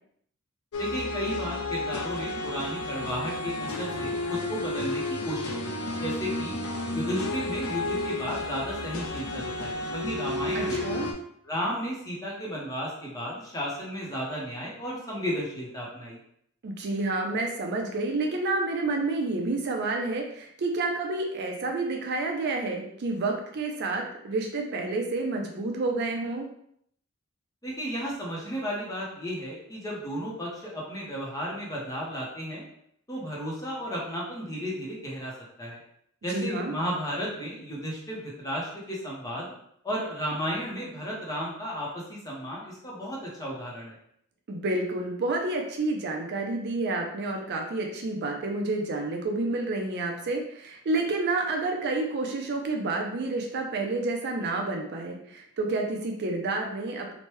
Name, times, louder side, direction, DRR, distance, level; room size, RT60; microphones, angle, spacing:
sound 1, 0.7-11.1, left 2 dB, 80° left, 0.5 m, -32 dB
voice 1, 0.8-5.6 6.0-6.6 6.9-10.8 11.4-16.2 27.6-32.6 33.1-35.3 35.6-35.8 36.2-39.5 39.8-44.0, equal, 15° left, -4 dB, 0.7 m, -33 dB
voice 2, 10.5-11.1 16.6-26.5 36.3-36.7 44.5-57.1, right 2 dB, 50° right, 2 dB, 0.4 m, -29 dB
3.0 x 2.1 x 3.0 m, 0.70 s
head